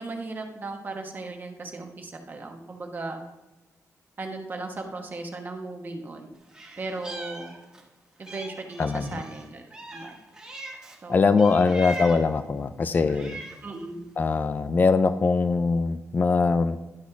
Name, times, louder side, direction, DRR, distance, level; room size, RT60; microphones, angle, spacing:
voice 1, 0.0-3.2 4.2-6.3 6.8-7.5 8.2-9.6 9.9-10.2 11.0-11.6 13.6-14.1, right 3 dB, 35° right, 3 dB, 1.1 m, -37 dB
Meow, 6.5-7.9 8.2-11.0 11.4-12.4 12.9-13.7, right 2 dB, 10° right, 1.3 m, -41 dB
voice 2, 8.8-9.1 11.1-13.4 14.2-16.8, left 4 dB, 30° left, 12 dB, 0.4 m, -22 dB
11.5 x 4.1 x 5.8 m, 1.1 s
wide cardioid pair, 165°, 6 cm